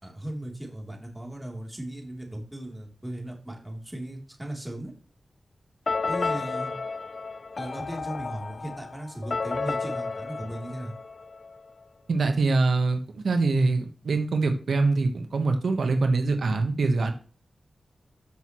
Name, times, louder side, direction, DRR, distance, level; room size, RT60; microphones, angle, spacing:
voice 1, 0.0-4.9 6.1-6.7 7.6-11.0, right 1 dB, 10° right, 0 dB, 3.1 m, -37 dB
sound 1, 5.9-11.6, left 4 dB, 55° left, 0.6 m, -32 dB
voice 2, 12.1-17.1, right 3 dB, 80° right, 6 dB, 1.1 m, -24 dB
14.5 x 6.2 x 3.1 m, 0.40 s
wide cardioid pair, 75°, 0 cm